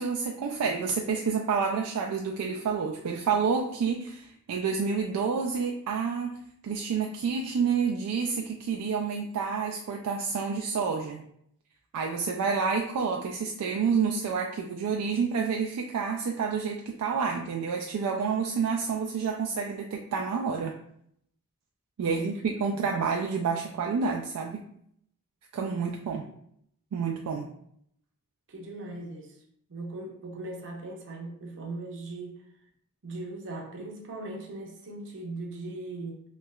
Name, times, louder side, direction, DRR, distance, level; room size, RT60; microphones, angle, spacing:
voice 1, 0.0-6.4 6.6-11.2 11.9-20.7 22.0-24.6 25.5-26.2 26.9-27.5, right 5 dB, 90° right, 1 dB, 0.3 m, -29 dB
voice 2, 22.0-22.3 22.7-23.0 26.1-26.2 28.5-29.3 29.7-32.4 33.0-36.2, right 2 dB, 60° right, 0 dB, 0.7 m, -39 dB
3.2 x 2.8 x 2.3 m, 0.70 s
head